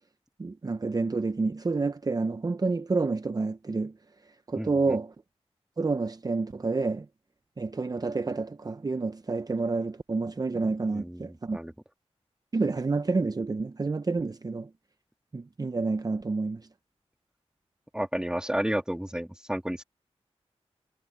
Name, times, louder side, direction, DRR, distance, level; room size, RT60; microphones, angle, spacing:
voice 1, 0.4-3.9 4.5-5.1 5.8-7.1 7.6-11.6 12.5-14.7 15.3-16.6, right 3 dB, 35° right, 0.6 m, -29 dB
voice 2, 4.6-5.0 10.9-11.7 17.9-19.8, equal, 5° right, 2.4 m, -32 dB
wide cardioid pair, 70°, 11 cm